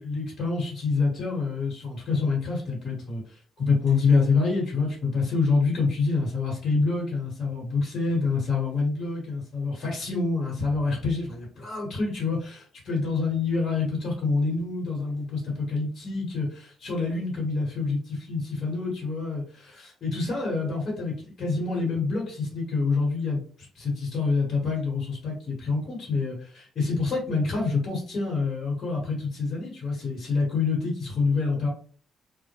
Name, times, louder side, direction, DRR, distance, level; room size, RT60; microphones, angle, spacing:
voice 1, 0.0-3.2 3.6-31.7, left 4 dB, 55° left, -3 dB, 1.2 m, -27 dB
2.1 x 2.1 x 2.9 m, 0.43 s
cardioid pair, 90°, 0 cm